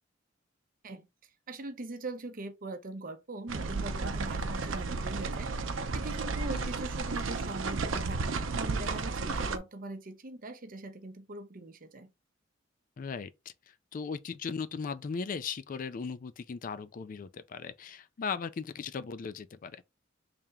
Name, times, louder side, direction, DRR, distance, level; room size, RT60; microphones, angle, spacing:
voice 1, 1.5-12.1, right 2 dB, 45° right, 0.7 m, -42 dB
sound 1, 3.5-9.6, right 4 dB, 85° right, 0.6 m, -33 dB
voice 2, 13.0-13.3 13.7-19.8, left 5 dB, 45° left, 0.4 m, -38 dB
3.4 x 2.8 x 3.5 m
head